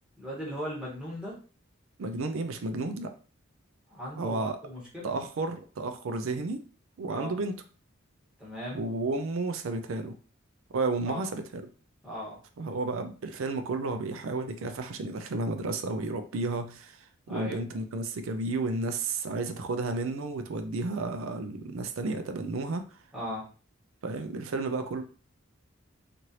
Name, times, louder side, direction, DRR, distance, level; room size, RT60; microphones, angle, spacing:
voice 1, 0.2-1.3 3.9-5.1 7.1-7.4 8.4-8.8 11.1-11.3 12.0-12.4 17.3-17.6 23.1-23.4, equal, 5° right, -7 dB, 1.2 m, -37 dB
voice 2, 2.0-3.1 4.2-4.6 5.0-6.6 7.0-7.6 8.7-10.1 10.7-11.6 12.6-17.0 17.3-22.8 24.0-25.0, right 3 dB, 80° right, 8 dB, 0.4 m, -32 dB
3.1 x 2.5 x 2.8 m, 0.38 s
head